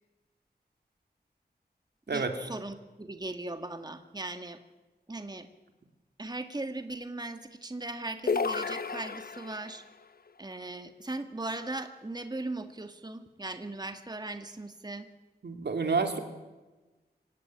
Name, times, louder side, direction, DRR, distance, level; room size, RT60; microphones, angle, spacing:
voice 1, 2.1-4.6 5.1-5.5 6.2-9.8 10.4-15.1, right 2 dB, 25° right, 8 dB, 1.7 m, -38 dB
sound 1, 8.3-9.8, left 5 dB, 60° left, 0.9 m, -32 dB
voice 2, 15.4-16.2, right 4 dB, 80° right, 6 dB, 3.1 m, -29 dB
26.0 x 17.0 x 9.1 m, 1.2 s
wide cardioid pair, 85°, 17 cm